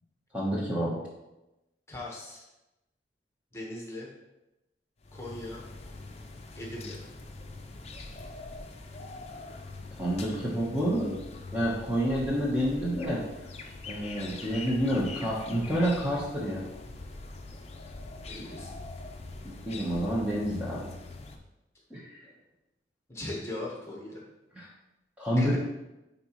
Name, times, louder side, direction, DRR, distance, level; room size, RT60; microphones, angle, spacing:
voice 1, 0.3-1.0 10.0-11.2 11.5-13.2 13.9-16.7 19.4-20.8 21.9-22.2 24.6-24.7 25.2-25.6, equal, 10° right, -6 dB, 1.2 m, -28 dB
voice 2, 1.9-2.4 3.5-4.1 5.1-5.6 6.6-7.0 18.3-18.7 23.1-24.2 25.4-25.6, left 1 dB, 15° left, -3 dB, 1.4 m, -39 dB
sound 1, 5.0-21.4, left 3 dB, 35° left, 0.6 m, -43 dB
9.6 x 4.1 x 3.1 m, 0.97 s
head